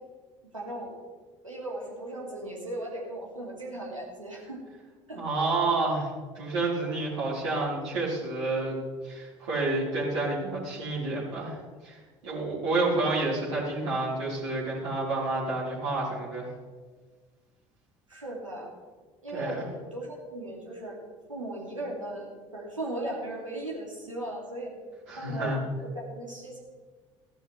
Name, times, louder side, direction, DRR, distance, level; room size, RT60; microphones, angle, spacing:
voice 1, 0.5-0.9 1.4-4.6 5.1-5.2 18.1-18.7 19.2-21.0 21.3-24.7 25.1-25.5 25.8-26.6, right 1 dB, 85° right, -3 dB, 2.6 m, -37 dB
voice 2, 5.2-6.1 6.3-8.8 9.0-11.6 11.8-12.0 12.2-16.5 19.3-19.7 25.1-25.6, right 2 dB, 70° right, -9 dB, 4.2 m, -29 dB
16.0 x 11.5 x 3.3 m, 1.4 s
figure-of-eight pair, 60°, 16 cm